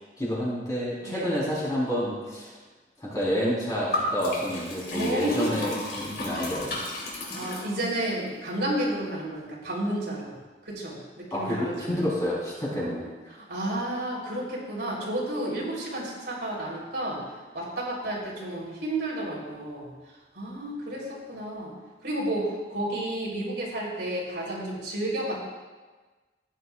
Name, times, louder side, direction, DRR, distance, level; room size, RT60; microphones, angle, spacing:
voice 1, 0.2-2.5 3.0-6.8 11.3-13.0, equal, 20° left, -7 dB, 3.7 m, -29 dB
voice 2, 1.0-1.4 4.9-5.7 7.3-10.3 10.6-11.9 13.3-17.2 17.5-21.7 22.0-25.5, right 1 dB, 75° right, -4 dB, 3.4 m, -31 dB
Liquid, 3.9-8.1, left 2 dB, 65° left, 3.4 m, -33 dB
15.5 x 9.9 x 2.3 m, 1.3 s
head